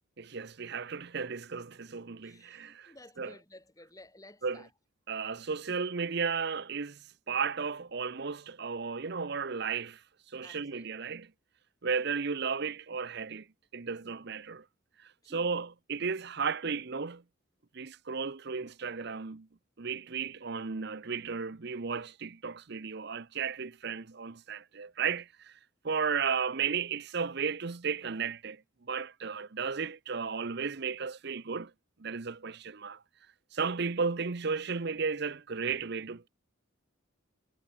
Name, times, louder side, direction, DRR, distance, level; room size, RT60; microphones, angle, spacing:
voice 1, 0.2-3.3 4.4-4.6 5.1-7.0 7.3-10.0 10.3-11.3 11.8-13.5 13.7-14.6 15.3-17.2 17.7-19.5 19.8-25.5 25.8-28.6 28.9-31.7 32.0-33.0 33.5-36.3, right 5 dB, 50° right, 0.7 m, -34 dB
voice 2, 2.2-4.7 10.4-11.0 15.2-15.5, left 1 dB, 15° left, 2.6 m, -54 dB
head